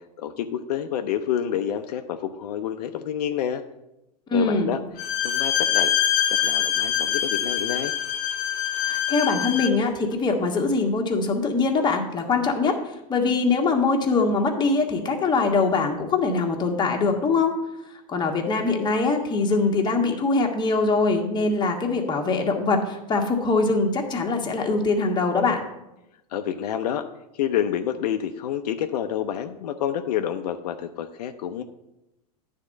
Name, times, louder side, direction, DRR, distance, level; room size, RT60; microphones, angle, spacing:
voice 1, 0.2-3.6 4.3-4.8 5.2-5.9 6.3-7.9 26.3-27.0 27.3-31.6, left 9 dB, 80° left, 7 dB, 0.6 m, -28 dB
voice 2, 4.3-4.7 8.7-12.7 13.1-17.6 18.1-25.6, left 3 dB, 20° left, 2 dB, 1.3 m, -23 dB
Bowed string instrument, 5.0-9.8, left 10 dB, 45° left, 1.0 m, -24 dB
9.6 x 3.7 x 6.3 m, 0.90 s
hypercardioid pair, 115°, 20 cm